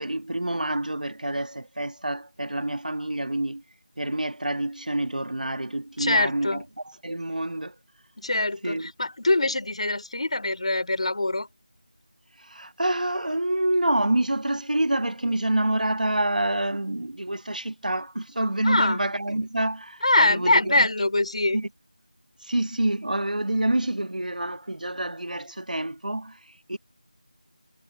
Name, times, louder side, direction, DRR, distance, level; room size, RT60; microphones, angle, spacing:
voice 1, 0.0-3.6 4.0-6.6 7.0-7.7 8.6-8.9 12.4-20.9 21.5-21.7 22.4-26.8, right 1 dB, 80° right, 1.4 m, -27 dB
voice 2, 6.0-6.6 8.2-11.5 18.6-19.0 20.0-21.6, left 2 dB, 50° left, 3.2 m, -23 dB
figure-of-eight pair, 175°, 4 cm